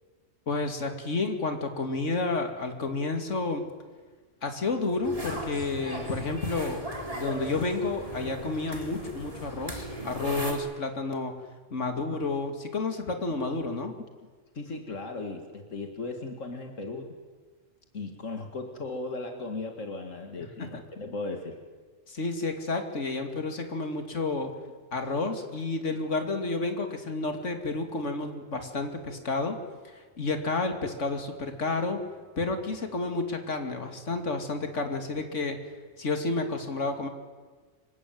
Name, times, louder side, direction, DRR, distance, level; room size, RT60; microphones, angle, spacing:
voice 1, 0.5-3.6 4.4-6.8 7.1-11.3 11.7-13.9 20.6-20.8 22.1-24.5 24.9-29.6 30.2-32.0 32.4-35.6 36.0-37.1, left 3 dB, 70° left, 5 dB, 2.8 m, -30 dB
sound 1, 5.0-10.5, right 1 dB, 30° right, 4.0 m, -37 dB
voice 2, 14.5-17.1 17.9-21.6, left 3 dB, 85° left, 4 dB, 2.6 m, -36 dB
26.0 x 23.0 x 9.4 m, 1.4 s
omnidirectional pair, 1.3 m